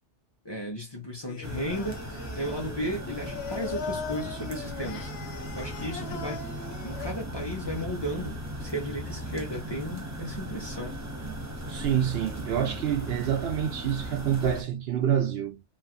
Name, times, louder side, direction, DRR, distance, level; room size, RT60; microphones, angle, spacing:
voice 1, 0.4-5.1 5.5-6.5 6.8-11.0, equal, 25° left, 0.7 m, -35 dB
Singing, 1.3-7.8, left 6 dB, 70° left, 0.9 m, -40 dB
sound 1, 1.4-14.6, right 1 dB, 25° right, 0.4 m, -37 dB
voice 2, 11.7-15.6, right 9 dB, 65° right, 0.8 m, -27 dB
3.1 x 2.5 x 2.3 m
omnidirectional pair, 1.2 m